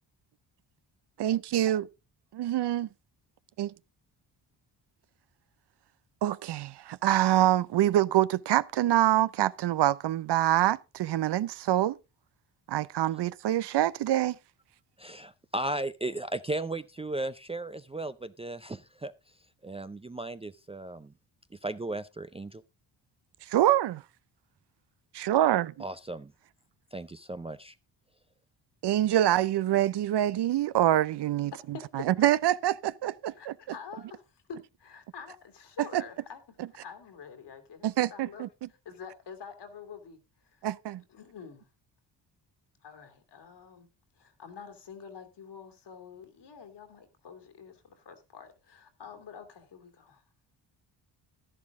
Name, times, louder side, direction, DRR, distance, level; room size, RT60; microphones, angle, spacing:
voice 1, 1.2-1.9 2.3-2.9 3.6-3.7 6.2-12.0 12.7-14.3 23.5-24.0 25.1-25.7 28.8-33.5 35.9-36.0 37.8-38.5 40.6-41.0, right 13 dB, 60° right, 0.7 m, -25 dB
voice 2, 15.0-19.1 19.6-21.1 21.6-22.6 25.8-26.3 26.9-27.7, right 2 dB, 15° right, 0.5 m, -36 dB
voice 3, 31.5-32.3 33.4-36.4 36.8-38.5 38.8-40.2 40.4-40.7 41.1-41.7 42.8-43.9 44.2-50.2, left 6 dB, 60° left, 2.6 m, -47 dB
11.5 x 11.0 x 3.7 m
cardioid pair, 70°, 45 cm